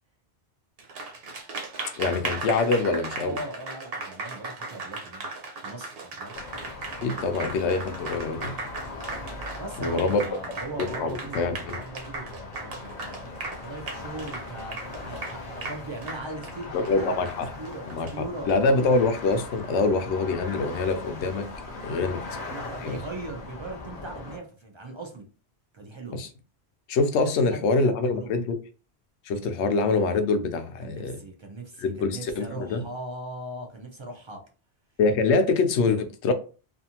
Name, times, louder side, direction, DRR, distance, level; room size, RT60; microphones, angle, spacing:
Applause, 0.8-18.5, right 3 dB, 65° right, 0.9 m, -37 dB
voice 1, 2.0-3.4 7.0-8.5 9.8-10.2 11.0-11.8 16.7-17.5 17.9-21.5 21.8-22.2 22.8-23.0 26.1-26.3 26.9-28.6 29.3-31.2 31.8-32.8 35.0-36.3, left 3 dB, 90° left, 0.9 m, -25 dB
voice 2, 3.2-5.2 5.6-6.3 9.6-13.3 13.6-17.2 17.6-18.5 21.8-22.1 22.5-25.2 25.7-26.2 27.2-28.4 30.8-34.4, right 2 dB, 45° right, 0.3 m, -39 dB
sound 1, 6.3-24.4, left 3 dB, 45° left, 0.6 m, -40 dB
2.5 x 2.5 x 2.8 m
omnidirectional pair, 1.1 m